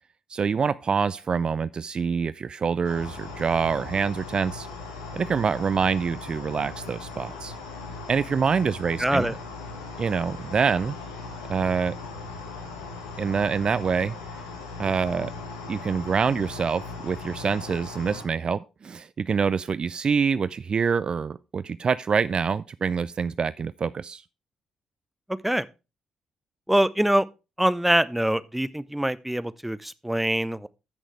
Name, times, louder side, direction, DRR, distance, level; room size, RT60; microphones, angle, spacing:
voice 1, 0.3-4.7 5.1-7.5 8.1-9.3 10.0-10.9 11.5-11.9 13.2-14.1 14.8-15.3 15.7-24.2, right 6 dB, 45° right, 0.4 m, -26 dB
sound 1, 2.8-18.2, left 3 dB, 85° left, 1.4 m, -38 dB
voice 2, 9.0-9.4 25.3-25.6 26.7-27.3 27.6-30.7, right 1 dB, 5° right, 0.7 m, -24 dB
14.0 x 6.4 x 3.2 m
hypercardioid pair, 40°, 2 cm